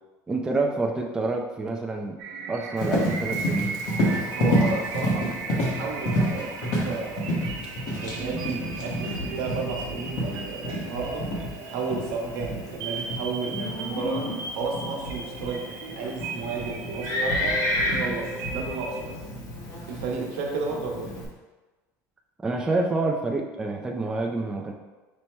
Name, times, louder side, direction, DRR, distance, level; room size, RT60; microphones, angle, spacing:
voice 1, 0.3-2.2 2.5-3.7 22.4-24.7, right 3 dB, 10° right, 1 dB, 0.3 m, -27 dB
sound 1, 2.2-19.1, right 4 dB, 50° right, 0.6 m, -37 dB
Livestock farm animals working animals, 2.8-21.3, equal, 55° left, 1.2 m, -29 dB
voice 2, 4.4-7.5 8.0-11.4 11.6-19.2 19.9-21.2, right 4 dB, 90° right, 0 dB, 1.0 m, -33 dB
5.4 x 2.1 x 4.4 m, 1.2 s
cardioid pair, 160°, 7 cm